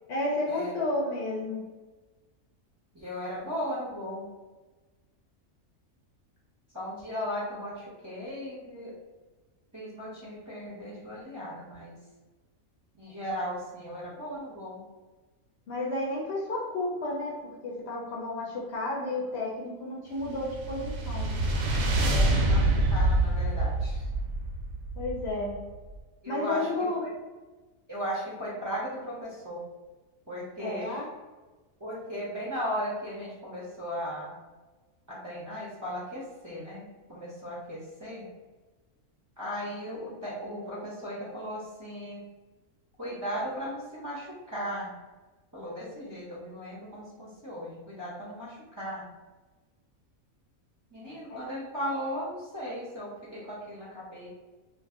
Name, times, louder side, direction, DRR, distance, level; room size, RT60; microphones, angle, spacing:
voice 1, 0.1-1.6 15.7-21.4 25.0-25.6 26.3-27.0 30.6-31.0 51.3-51.4, left 2 dB, 60° left, -4 dB, 0.8 m, -32 dB
voice 2, 2.9-4.2 6.7-8.9 9.7-12.0 12.9-14.8 22.0-24.1 26.2-26.7 27.0-27.1 27.9-29.6 30.3-31.0 31.8-34.4 35.1-38.3 39.4-42.2 43.0-44.9 45.5-49.0 50.9-54.3, equal, 25° right, -7 dB, 0.4 m, -36 dB
sound 1, 20.2-25.7, right 1 dB, 65° right, 0.8 m, -26 dB
2.6 x 2.5 x 3.6 m, 1.2 s
omnidirectional pair, 1.5 m